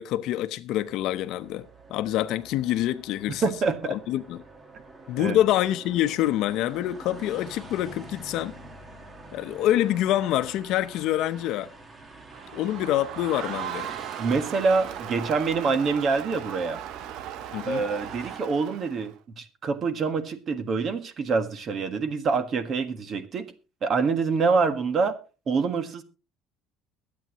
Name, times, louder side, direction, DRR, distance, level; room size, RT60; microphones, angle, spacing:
voice 1, 0.0-3.4 3.9-4.4 5.1-8.5 9.3-11.7 12.5-13.9 17.5-17.8, left 13 dB, 60° left, 0.8 m, -26 dB
sound 1, 0.7-18.4, right 2 dB, 20° right, 1.7 m, -46 dB
voice 2, 3.4-3.8 5.2-5.4 14.2-16.8 17.7-23.5 23.8-25.1 25.5-26.0, right 4 dB, 35° right, 1.6 m, -26 dB
Crowd, 12.3-19.1, right 12 dB, 65° right, 0.8 m, -38 dB
22.5 x 8.7 x 3.1 m
cardioid pair, 145°, 0 cm